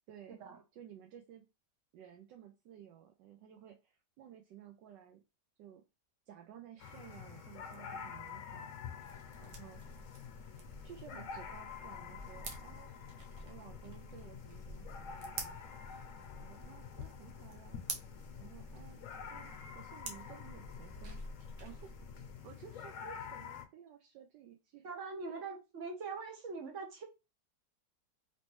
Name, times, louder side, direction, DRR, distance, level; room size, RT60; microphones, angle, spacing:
voice 1, 0.1-0.4 0.7-1.5 1.9-5.2 5.6-5.8 6.3-8.7 9.4-9.8 10.8-12.9 13.4-15.8 16.4-17.8 18.4-19.0 19.3-21.2 21.6-21.9 22.4-24.8 25.3-25.5, right 10 dB, 85° right, 1.3 m, -55 dB
sound 1, 6.8-23.7, left 7 dB, 65° left, 0.8 m, -48 dB
sound 2, 9.0-22.3, right 2 dB, 70° right, 1.3 m, -49 dB
voice 2, 24.8-27.0, right 4 dB, 50° right, 1.1 m, -42 dB
3.2 x 3.1 x 2.9 m
omnidirectional pair, 1.9 m